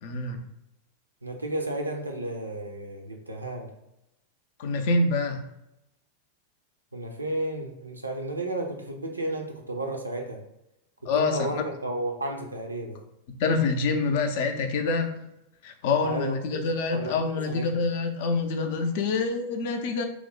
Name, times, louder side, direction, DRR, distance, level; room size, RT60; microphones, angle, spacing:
voice 1, 0.0-0.4 4.6-5.4 11.1-11.5 13.4-15.2 15.6-20.1, left 3 dB, 50° left, 5 dB, 0.4 m, -26 dB
voice 2, 1.2-3.7 6.9-10.4 11.0-13.0 16.0-16.6 16.9-17.8, right 1 dB, 80° right, 2 dB, 0.5 m, -33 dB
3.0 x 2.1 x 3.8 m, 0.85 s
figure-of-eight pair, 90°, 0 cm